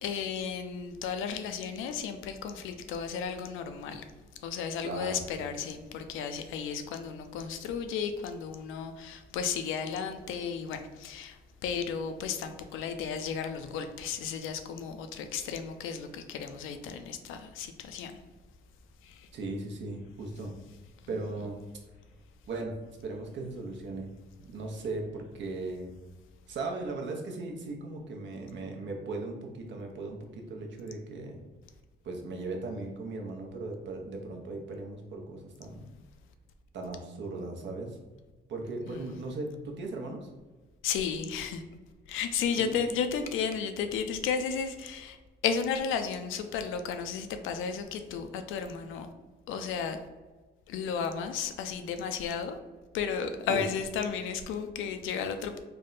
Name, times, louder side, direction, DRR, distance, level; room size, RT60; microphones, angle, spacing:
voice 1, 0.0-4.1 4.4-18.2 19.0-19.3 21.0-21.2 38.9-39.2 40.8-41.6 42.1-45.2 45.4-49.1 49.5-50.0 50.7-52.6 52.9-55.6, left 6 dB, 85° left, 8 dB, 0.4 m, -33 dB
voice 2, 4.8-5.2 19.3-20.5 21.1-21.6 22.5-22.7 23.0-24.1 24.4-25.9 26.5-31.4 32.0-35.9 36.7-38.0 38.5-40.3 42.6-42.8 53.5-53.7, right 3 dB, 65° right, 2 dB, 0.8 m, -37 dB
3.4 x 2.1 x 3.9 m, 1.2 s
cardioid pair, 90°, 20 cm